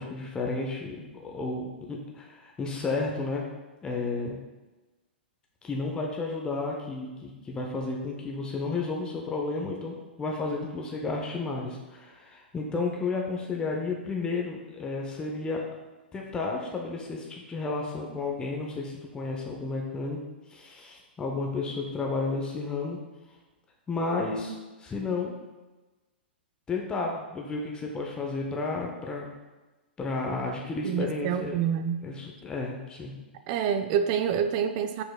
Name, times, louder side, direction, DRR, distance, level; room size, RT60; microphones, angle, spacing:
voice 1, 0.0-3.4 3.8-4.4 5.6-15.6 16.1-20.2 20.5-23.0 23.9-25.3 26.7-29.3 30.0-31.6 32.0-33.1, left 3 dB, 15° left, -1 dB, 0.5 m, -32 dB
voice 2, 30.8-32.0 33.5-35.0, right 8 dB, 45° right, 8 dB, 0.3 m, -27 dB
5.0 x 3.9 x 2.3 m, 1.2 s
hypercardioid pair, 115°, 6 cm